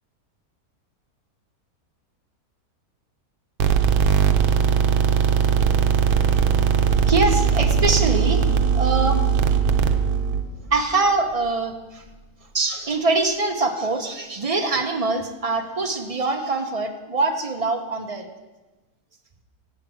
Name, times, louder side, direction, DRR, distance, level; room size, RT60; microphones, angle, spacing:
sound 1, 3.6-10.4, right 7 dB, 75° right, 1.2 m, -19 dB
voice 1, 6.3-6.8 7.0-9.3 10.7-12.0 12.5-18.3, right 3 dB, 40° right, 4 dB, 0.5 m, -24 dB
sound 2, 7.6-12.7 13.0-13.2, equal, 85° left, 3.0 m, -36 dB
8.2 x 7.3 x 7.5 m, 1.1 s
omnidirectional pair, 1.6 m